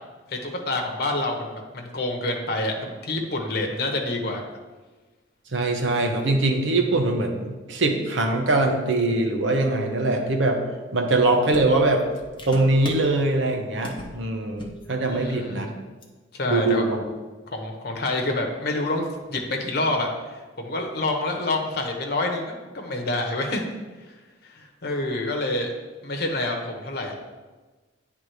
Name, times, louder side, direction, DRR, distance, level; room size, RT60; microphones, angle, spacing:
voice 1, 0.3-4.4 15.1-15.7 16.3-16.8 17.5-23.6 24.5-25.7 26.0-27.2, left 2 dB, 55° left, 2 dB, 1.0 m, -27 dB
voice 2, 5.5-10.6 10.9-12.0 12.5-15.7 16.5-17.0, right 2 dB, 80° right, 3 dB, 1.0 m, -22 dB
sound 1, 11.1-11.2 11.5-13.2 13.8-14.2 14.5-14.8 15.1-15.3 16.0-16.1, left 1 dB, 25° left, 0.8 m, -39 dB
9.2 x 3.6 x 4.8 m, 1.3 s
head